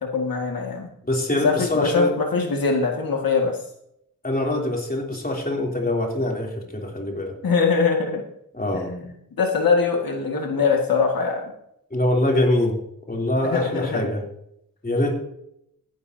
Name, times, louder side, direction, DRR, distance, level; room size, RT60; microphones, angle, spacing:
voice 1, 0.0-0.9 1.4-3.6 7.4-8.2 8.7-9.1 9.4-11.5 13.4-14.1, left 5 dB, 75° left, 1 dB, 2.1 m, -22 dB
voice 2, 1.0-2.1 4.2-7.3 8.5-8.9 11.9-12.8 13.1-14.2 14.8-15.1, left 1 dB, 25° left, 0 dB, 3.3 m, -24 dB
15.5 x 11.5 x 2.8 m, 0.75 s
wide cardioid pair, 80°, 35 cm